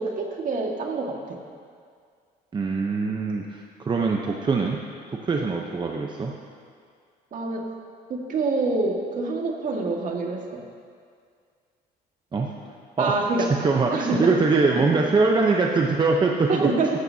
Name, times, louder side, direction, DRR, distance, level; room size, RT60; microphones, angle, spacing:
voice 1, 0.0-1.4 7.3-7.6 8.1-10.6 13.0-13.4 13.9-14.3 16.5-16.9, right 3 dB, 50° right, 0 dB, 1.9 m, -26 dB
voice 2, 2.5-4.8 5.1-6.3 12.3-12.5 13.0-13.2 13.5-16.7, right 4 dB, 25° right, 0 dB, 0.8 m, -23 dB
15.5 x 13.0 x 2.8 m, 2.2 s
cardioid pair, 110°, 17 cm